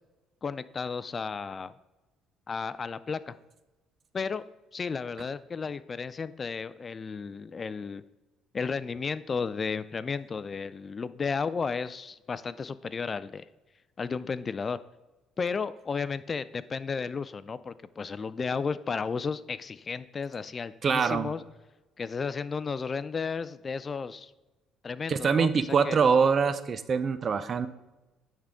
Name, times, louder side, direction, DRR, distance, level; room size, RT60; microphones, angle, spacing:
voice 1, 0.4-1.7 2.5-3.3 4.1-4.4 4.7-8.0 8.5-13.5 14.0-14.8 15.4-21.4 22.0-24.3 24.8-26.0, left 5 dB, 35° left, 15 dB, 0.3 m, -33 dB
voice 2, 20.8-21.3 25.1-27.7, right 6 dB, 45° right, 13 dB, 0.5 m, -24 dB
10.0 x 3.7 x 3.6 m, 1.1 s
supercardioid pair, 80°, 0 cm